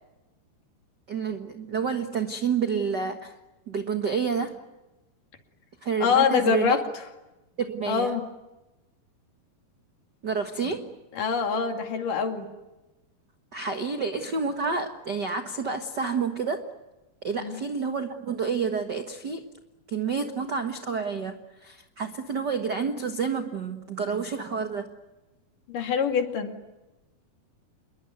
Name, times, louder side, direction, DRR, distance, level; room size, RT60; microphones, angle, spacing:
voice 1, 1.1-3.3 3.7-4.6 5.8-6.8 7.6-8.1 10.2-10.9 13.5-16.6 17.2-19.4 19.9-24.9, right 5 dB, 80° right, 6 dB, 0.9 m, -29 dB
voice 2, 6.0-6.9 7.9-8.2 11.1-12.5 17.4-17.6 25.7-26.5, left 6 dB, 60° left, 5 dB, 3.9 m, -24 dB
28.0 x 22.0 x 9.4 m, 1.1 s
omnidirectional pair, 4.4 m